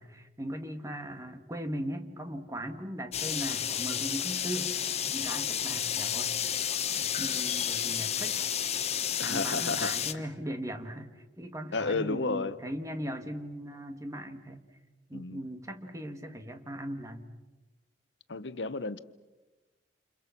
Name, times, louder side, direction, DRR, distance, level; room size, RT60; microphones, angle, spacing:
voice 1, 0.0-6.5 7.0-8.5 9.2-14.6 15.1-17.3, equal, 20° right, 2.0 m, -39 dB
sound 1, 3.1-10.1, left 9 dB, 35° left, 1.0 m, -31 dB
voice 2, 9.2-10.2 11.7-12.6 15.1-15.4 18.3-19.0, left 3 dB, 85° left, 0.9 m, -32 dB
30.0 x 28.5 x 6.0 m
head